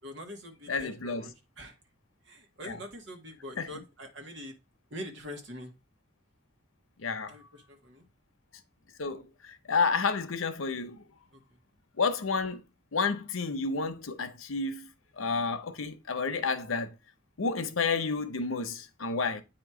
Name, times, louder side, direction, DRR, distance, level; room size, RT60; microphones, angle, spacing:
voice 1, 0.0-1.8 2.3-4.6 4.9-5.7 7.3-8.0 11.3-11.4, left 1 dB, 60° right, 1.7 m, -44 dB
voice 2, 0.7-1.3 2.6-2.8 3.6-3.7 7.0-7.3 9.0-11.0 12.0-12.6 12.9-14.9 15.2-16.9 17.4-19.4, left 4 dB, 90° left, 0.8 m, -30 dB
8.7 x 3.0 x 4.9 m
head